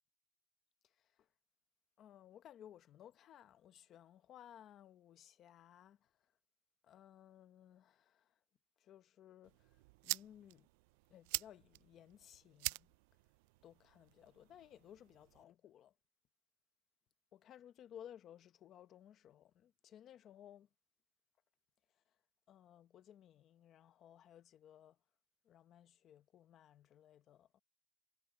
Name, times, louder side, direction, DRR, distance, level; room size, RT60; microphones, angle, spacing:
voice 1, 0.8-1.3 2.0-6.1 6.8-8.4 8.8-10.7 11.1-12.9 13.6-15.9 17.3-20.7 21.9-22.0 22.5-25.0 25.4-27.5, left 10 dB, 35° left, 0.9 m, -59 dB
sound 1, 9.4-15.4, right 23 dB, 85° right, 0.3 m, -46 dB
cardioid pair, 175°, 0 cm